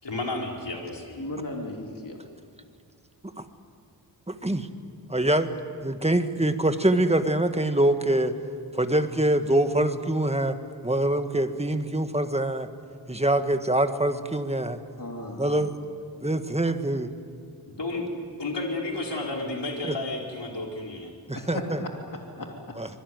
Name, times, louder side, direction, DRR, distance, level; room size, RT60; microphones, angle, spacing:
voice 1, 0.0-1.3 5.1-5.2 17.7-18.1 18.4-21.1, left 2 dB, 70° left, 0 dB, 4.6 m, -32 dB
voice 2, 1.2-2.2 15.0-15.5 21.3-22.7, left 1 dB, 45° left, 1 dB, 3.0 m, -36 dB
voice 3, 5.1-5.5 5.8-8.4 8.7-12.7 13.1-14.8 15.4-15.8 16.2-17.1 19.9-20.0 21.3-21.8 22.8-22.9, right 1 dB, 15° right, 8 dB, 1.6 m, -24 dB
25.0 x 22.0 x 9.5 m, 2.3 s
wide cardioid pair, 70°, 44 cm